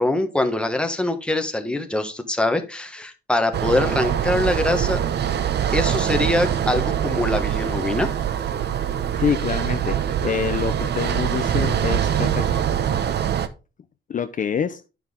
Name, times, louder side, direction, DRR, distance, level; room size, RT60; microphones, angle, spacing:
voice 1, 0.0-5.0 5.7-8.1, left 1 dB, 5° left, 6 dB, 1.3 m, -23 dB
sound 1, 3.5-13.5, right 9 dB, 60° right, 0.8 m, -23 dB
voice 2, 9.2-9.9 10.2-12.5 14.1-14.8, left 7 dB, 40° left, 9 dB, 0.6 m, -26 dB
9.4 x 5.9 x 3.7 m, 0.31 s
cardioid pair, 90°, 20 cm